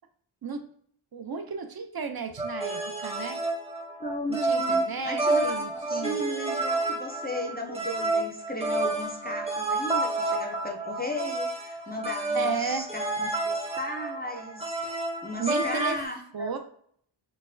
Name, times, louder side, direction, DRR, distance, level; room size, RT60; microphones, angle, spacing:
voice 1, 1.1-3.4 4.5-6.2 12.3-12.9 15.4-16.1 16.3-16.6, right 5 dB, 50° right, 6 dB, 0.4 m, -33 dB
sound 1, 2.4-16.0, right 2 dB, 15° right, 0.7 m, -30 dB
voice 2, 4.0-15.0 15.2-16.5, left 1 dB, 20° left, 2 dB, 0.4 m, -36 dB
3.9 x 2.1 x 2.5 m, 0.63 s
wide cardioid pair, 50°, 48 cm